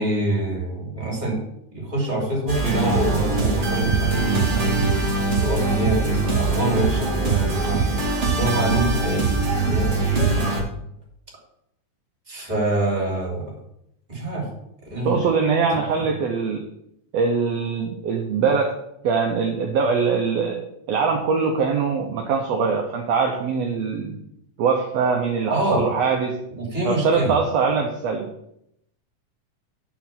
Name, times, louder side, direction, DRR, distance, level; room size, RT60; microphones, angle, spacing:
voice 1, 0.0-1.4 1.7-4.8 5.4-7.8 8.3-10.5 12.3-13.6 14.1-14.5 14.9-15.2 25.5-25.9 26.6-27.4, right 2 dB, 15° right, -3 dB, 2.6 m, -25 dB
sound 1, 2.5-10.6, right 3 dB, 45° right, 0.8 m, -22 dB
voice 2, 15.0-16.6 17.1-18.7 19.0-20.6 20.9-24.2 24.6-26.4 26.8-28.3, right 5 dB, 75° right, 2 dB, 1.6 m, -22 dB
8.1 x 4.6 x 5.7 m, 0.77 s
omnidirectional pair, 3.6 m